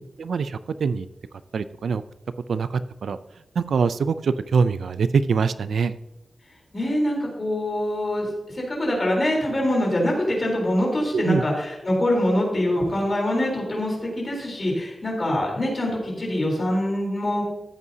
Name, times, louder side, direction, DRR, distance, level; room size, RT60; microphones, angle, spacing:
voice 1, 0.2-1.1 1.5-2.0 2.5-3.2 3.6-6.0 11.1-11.4, right 5 dB, 90° right, 13 dB, 0.3 m, -23 dB
voice 2, 6.7-8.3 8.5-17.4, left 1 dB, 30° left, -2 dB, 3.6 m, -24 dB
14.0 x 8.3 x 2.7 m, 0.97 s
wide cardioid pair, 155°, 0 cm